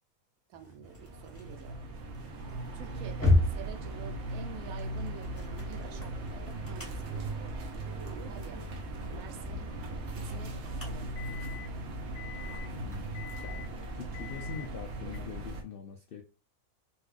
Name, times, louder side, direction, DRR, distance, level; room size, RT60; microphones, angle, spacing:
sound 1, 0.5-15.2, left 2 dB, 10° left, 0.8 m, -36 dB
voice 1, 0.5-1.8 2.7-7.4 8.1-8.6 9.1-9.7 10.1-11.1, right 8 dB, 90° right, 1.1 m, -48 dB
sound 2, 0.8-15.6, right 2 dB, 60° right, 0.9 m, -38 dB
voice 2, 12.4-13.7 13.9-16.2, left 6 dB, 75° left, 0.5 m, -44 dB
4.1 x 2.3 x 2.4 m
omnidirectional pair, 1.5 m